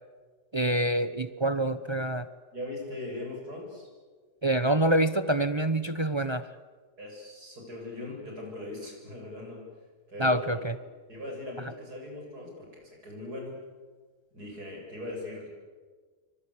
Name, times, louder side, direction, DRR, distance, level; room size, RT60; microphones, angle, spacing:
voice 1, 0.5-2.3 4.4-6.5 10.2-10.8, right 1 dB, 35° right, 12 dB, 0.4 m, -26 dB
voice 2, 2.5-3.9 7.0-9.7 10.1-10.7 11.1-13.6 14.3-15.5, left 2 dB, 65° right, 0 dB, 8.1 m, -40 dB
28.0 x 25.0 x 8.4 m, 1.5 s
omnidirectional pair, 1.8 m